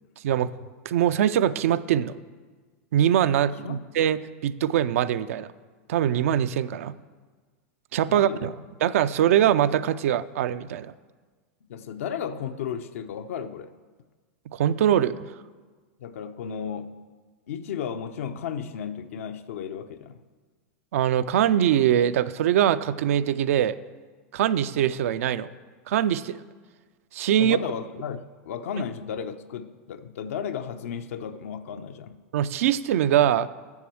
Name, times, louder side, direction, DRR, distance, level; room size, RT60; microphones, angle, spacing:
voice 1, 0.9-2.1 2.9-5.5 5.9-6.9 7.9-8.5 8.8-10.9 14.5-15.3 20.9-23.8 24.3-25.5 25.9-26.4 27.1-27.6 32.3-33.5, right 10 dB, 70° right, 13 dB, 0.4 m, -22 dB
voice 2, 8.1-8.5 11.6-13.7 16.0-17.0 17.5-20.2 27.4-32.2, left 7 dB, 75° left, 9 dB, 0.6 m, -34 dB
7.2 x 6.9 x 7.6 m, 1.4 s
hypercardioid pair, 125°, 8 cm